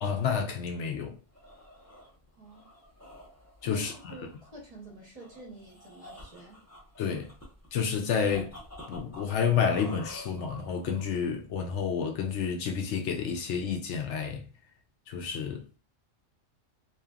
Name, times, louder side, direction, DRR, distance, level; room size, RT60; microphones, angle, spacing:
voice 1, 0.0-1.1 3.6-3.9 7.0-7.3 7.7-8.5 8.9-14.4 15.1-15.6, left 6 dB, 70° left, 0.8 m, -29 dB
sound 1, 1.1-11.4, left 1 dB, 15° left, 0.6 m, -50 dB
voice 2, 2.4-2.7 3.6-6.6, right 1 dB, 35° right, 0.7 m, -47 dB
2.8 x 2.4 x 2.3 m
omnidirectional pair, 1.3 m